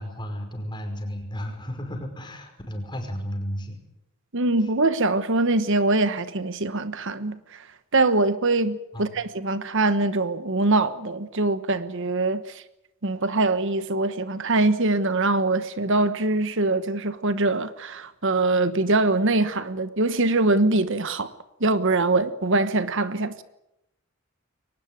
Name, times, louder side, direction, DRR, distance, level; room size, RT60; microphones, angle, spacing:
voice 1, 0.0-3.8 4.6-4.7 8.9-9.2, equal, 20° left, 5.5 m, -33 dB
voice 2, 4.3-7.4 7.9-12.4 13.0-21.3 21.6-23.4, right 2 dB, 60° right, 1.2 m, -23 dB
23.0 x 19.5 x 9.3 m
head